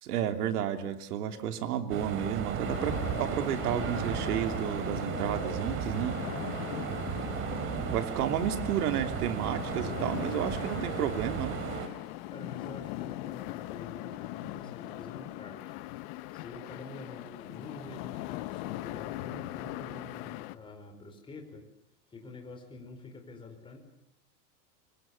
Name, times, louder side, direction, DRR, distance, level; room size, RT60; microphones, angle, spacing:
voice 1, 0.0-6.3 7.9-11.6 14.4-14.7, right 9 dB, 75° right, 7 dB, 3.1 m, -32 dB
sound 1, 1.9-11.9, right 7 dB, 25° right, 2.9 m, -35 dB
sound 2, 2.6-20.6, left 17 dB, 40° left, 1.1 m, -40 dB
voice 2, 6.7-7.3 11.9-15.8 16.3-21.6 22.1-23.8, left 3 dB, 10° left, 2 dB, 4.9 m, -47 dB
29.5 x 24.5 x 7.2 m, 0.75 s
supercardioid pair, 160°, 46 cm